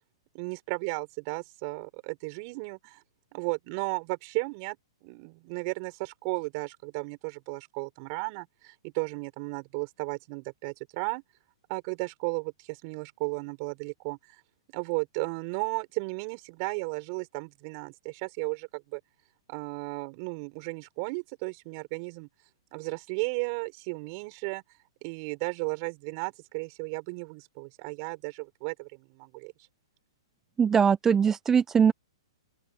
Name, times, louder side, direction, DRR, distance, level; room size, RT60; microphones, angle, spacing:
voice 1, 0.3-3.0 3.3-4.8 5.0-11.2 11.7-14.2 14.7-19.0 19.5-22.3 22.7-24.6 25.0-29.5, right 34 dB, 40° right, 5.2 m, -34 dB
voice 2, 30.6-31.9, right 7 dB, 15° right, 0.3 m, -21 dB
open air
hypercardioid pair, 130°, 3 cm